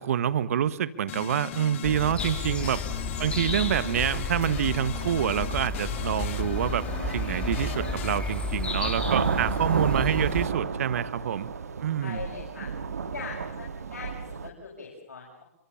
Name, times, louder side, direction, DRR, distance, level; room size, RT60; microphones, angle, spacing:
voice 1, 0.0-2.8 3.2-11.5 11.8-12.2, right 9 dB, 65° right, 15 dB, 1.5 m, -27 dB
sound 1, 1.1-8.2, left 13 dB, 50° left, 1.9 m, -38 dB
sound 2, 1.8-10.5, left 3 dB, 10° left, 4.9 m, -32 dB
sound 3, 3.9-4.0 5.0-14.5, right 6 dB, 80° right, 2.0 m, -33 dB
voice 2, 12.0-12.7 13.0-15.4, left 5 dB, 85° left, -3 dB, 7.9 m, -41 dB
27.5 x 24.5 x 7.3 m, 0.72 s
hypercardioid pair, 125°, 8 cm